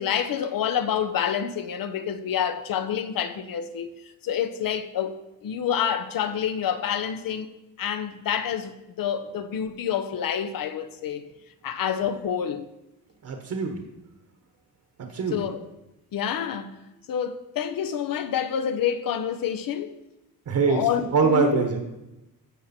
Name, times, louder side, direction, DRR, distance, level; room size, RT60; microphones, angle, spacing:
voice 1, 0.0-3.9 4.2-5.1 5.4-7.5 7.8-8.7 9.0-11.3 11.6-12.6 15.3-15.6 16.1-16.8 17.1-20.0 20.7-21.6, left 8 dB, 75° left, 0.9 m, -27 dB
voice 2, 13.2-13.8 15.0-15.4 20.5-20.9 21.1-21.8, right 5 dB, 60° right, 1.3 m, -23 dB
13.0 x 7.4 x 4.3 m
cardioid pair, 125°, 34 cm